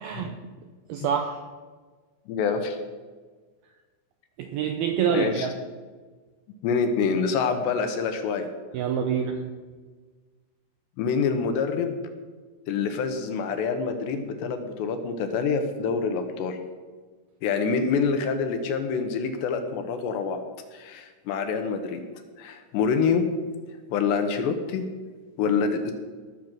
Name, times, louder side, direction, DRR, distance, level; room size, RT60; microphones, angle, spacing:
voice 1, 0.0-0.4 0.9-1.4 4.4-5.5 8.7-9.4, right 7 dB, 90° right, 5 dB, 2.2 m, -26 dB
voice 2, 2.3-2.8 5.1-5.5 6.6-8.5 11.0-12.0 12.7-16.6 17.4-20.4 20.7-22.0 22.4-23.3 23.9-24.9 25.4-25.9, left 5 dB, 75° left, 7 dB, 3.0 m, -26 dB
18.5 x 7.0 x 6.1 m, 1.4 s
omnidirectional pair, 5.5 m